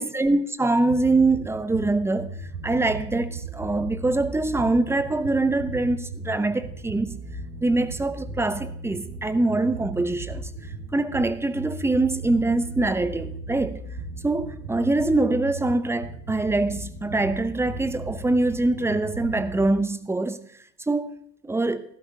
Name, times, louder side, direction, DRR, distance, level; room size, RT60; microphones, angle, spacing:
voice 1, 0.0-2.3 2.6-7.2 7.6-10.5 10.9-13.8 14.2-20.5 20.9-21.1 21.4-21.8, right 2 dB, 5° right, 0.6 m, -24 dB
sound 1, 0.9-19.7, right 3 dB, 80° right, 2.1 m, -37 dB
15.5 x 12.0 x 2.7 m
figure-of-eight pair, 65°, 45 cm